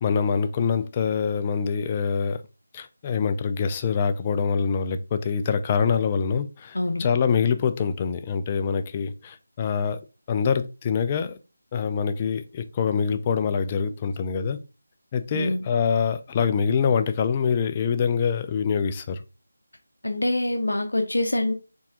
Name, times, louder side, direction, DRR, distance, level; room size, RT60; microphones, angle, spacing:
voice 1, 0.0-2.4 2.7-10.0 10.3-11.4 11.7-14.6 15.1-19.2, left 6 dB, 25° left, 0.3 m, -25 dB
voice 2, 6.7-7.1 15.3-15.6 20.0-21.5, left 1 dB, 85° left, 0.7 m, -25 dB
4.6 x 3.5 x 2.8 m
figure-of-eight pair, 165°, 0 cm